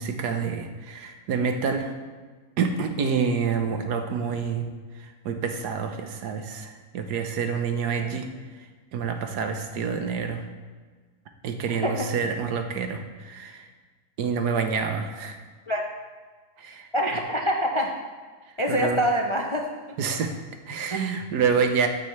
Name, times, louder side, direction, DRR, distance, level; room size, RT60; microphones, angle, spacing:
voice 1, 0.0-2.0 2.6-4.7 4.9-8.3 8.9-10.4 11.4-13.7 14.2-15.4 16.6-16.9 18.7-19.0 20.0-20.4 20.7-21.9, right 6 dB, 85° right, 6 dB, 1.5 m, -27 dB
voice 2, 16.9-17.9 18.6-19.7 20.9-21.1, equal, 35° left, 1 dB, 0.5 m, -25 dB
14.5 x 8.1 x 3.2 m, 1.4 s
omnidirectional pair, 1.7 m